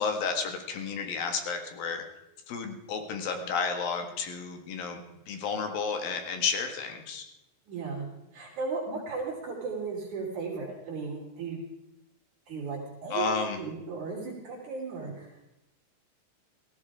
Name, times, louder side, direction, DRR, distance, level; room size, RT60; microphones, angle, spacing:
voice 1, 0.0-2.0 2.5-7.3 13.1-13.6, left 5 dB, 75° left, 5 dB, 3.5 m, -32 dB
voice 2, 7.7-8.0 8.3-11.6 12.5-13.3 13.6-15.4, right 4 dB, 55° right, -2 dB, 4.4 m, -35 dB
17.5 x 15.5 x 4.9 m, 0.92 s
omnidirectional pair, 4.2 m